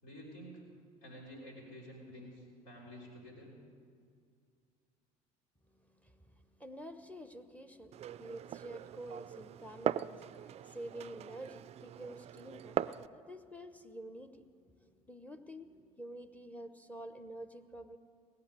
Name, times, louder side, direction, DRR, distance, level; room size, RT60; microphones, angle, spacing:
voice 1, 0.0-0.6 1.0-3.5, equal, 70° left, -3 dB, 5.1 m, -50 dB
voice 2, 5.7-18.0, right 1 dB, 5° left, 9 dB, 1.0 m, -49 dB
Glass, 7.9-13.1, right 11 dB, 35° right, 0.3 m, -40 dB
18.5 x 7.0 x 9.6 m, 2.3 s
figure-of-eight pair, 60°, 19 cm